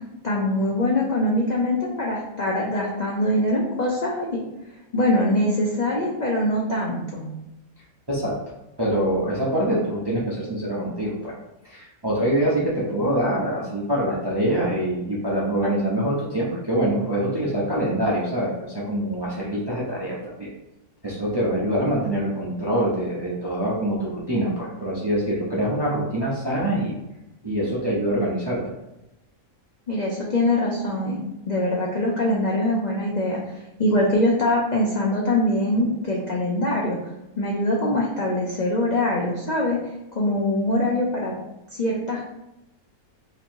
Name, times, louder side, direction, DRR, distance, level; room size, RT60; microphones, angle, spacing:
voice 1, 0.2-4.4 4.9-7.3 29.9-31.2 31.5-33.4 33.8-37.0 37.4-39.8 40.1-41.3 41.7-42.3, left 1 dB, 65° left, -3 dB, 0.4 m, -23 dB
voice 2, 8.8-11.4 11.6-20.5 21.0-26.9 27.4-28.6, right 1 dB, 30° right, -5 dB, 0.4 m, -24 dB
3.0 x 2.6 x 4.4 m, 0.91 s
omnidirectional pair, 1.6 m